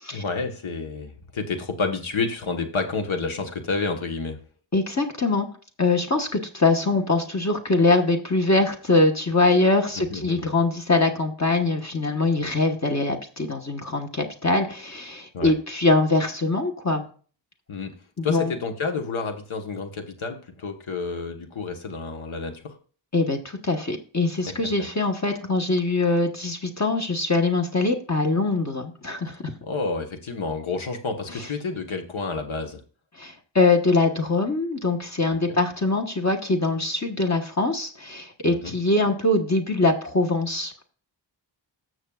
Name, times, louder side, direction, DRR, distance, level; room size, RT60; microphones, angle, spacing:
voice 1, 0.1-4.4 9.9-10.5 15.3-15.5 17.7-22.7 24.5-24.7 29.6-32.8 35.5-35.6 38.5-38.7, left 4 dB, 90° left, 5 dB, 1.3 m, -30 dB
voice 2, 4.7-5.5 5.8-17.1 18.2-18.5 23.1-29.5 31.3-31.5 33.2-40.7, left 3 dB, 35° left, 3 dB, 1.2 m, -23 dB
14.5 x 6.3 x 2.3 m, 0.41 s
wide cardioid pair, 75°, 46 cm